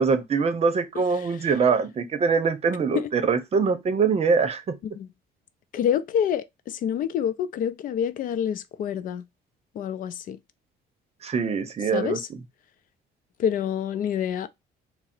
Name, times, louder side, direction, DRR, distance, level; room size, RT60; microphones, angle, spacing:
voice 1, 0.0-4.8 11.2-12.2, right 5 dB, 40° right, 0.7 m, -23 dB
voice 2, 0.9-1.3 2.9-3.1 5.0-5.1 5.7-9.2 9.8-10.4 11.9-12.3 13.4-14.5, left 9 dB, 55° left, 0.4 m, -27 dB
3.6 x 2.0 x 4.2 m
cardioid pair, 110°, 17 cm